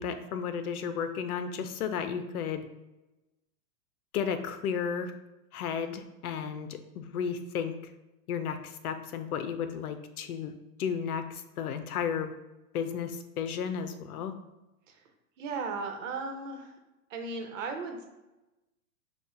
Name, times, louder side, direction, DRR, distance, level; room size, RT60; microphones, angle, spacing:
voice 1, 0.0-2.7 4.1-5.1 5.5-7.7 8.3-10.5 10.8-12.3 12.7-14.3, left 7 dB, 90° left, 9 dB, 0.7 m, -33 dB
voice 2, 15.4-16.7 17.1-18.1, right 4 dB, 60° right, 4 dB, 1.0 m, -36 dB
6.9 x 2.4 x 2.7 m, 1.0 s
supercardioid pair, 155°, 43 cm